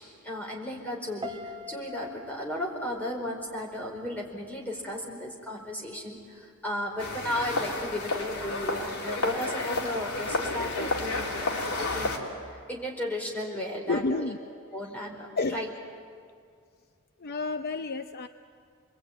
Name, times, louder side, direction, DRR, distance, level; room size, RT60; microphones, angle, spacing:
voice 1, 0.0-12.1 12.7-14.3 14.7-15.7, left 1 dB, 5° left, -1 dB, 4.7 m, -35 dB
Piano, 1.2-4.3 4.6-5.0, left 3 dB, 20° right, 1.0 m, -43 dB
sound 1, 7.0-12.2, left 2 dB, 90° left, 3.4 m, -31 dB
voice 2, 13.9-14.4 15.4-15.6 17.2-18.3, left 3 dB, 45° left, 7 dB, 0.7 m, -30 dB
27.5 x 22.0 x 9.5 m, 2.2 s
head